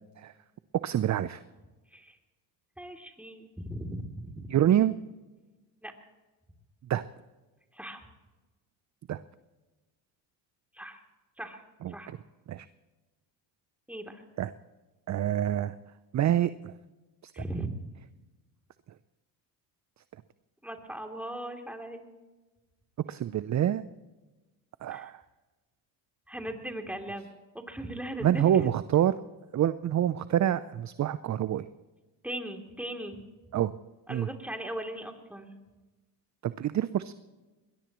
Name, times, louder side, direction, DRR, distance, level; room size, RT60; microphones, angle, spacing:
voice 1, 0.8-1.4 4.5-5.0 6.9-7.0 9.1-9.2 11.8-12.2 12.5-12.7 14.4-14.5 15.1-15.7 16.1-16.7 17.2-17.4 23.1-23.8 24.8-25.2 28.2-29.2 29.5-31.7 33.5-33.7 34.1-34.3 36.4-37.1, right 11 dB, 35° right, 14 dB, 0.6 m, -27 dB
voice 2, 2.8-4.5 5.8-5.9 7.7-8.0 10.7-11.0 11.4-11.6 11.9-12.1 13.9-14.2 17.3-17.7 20.6-22.0 24.9-25.1 26.3-27.3 27.7-28.7 32.2-33.2 34.1-35.5, right 1 dB, 5° right, 3 dB, 3.1 m, -38 dB
21.5 x 21.0 x 3.1 m, 1.2 s
supercardioid pair, 70°, 47 cm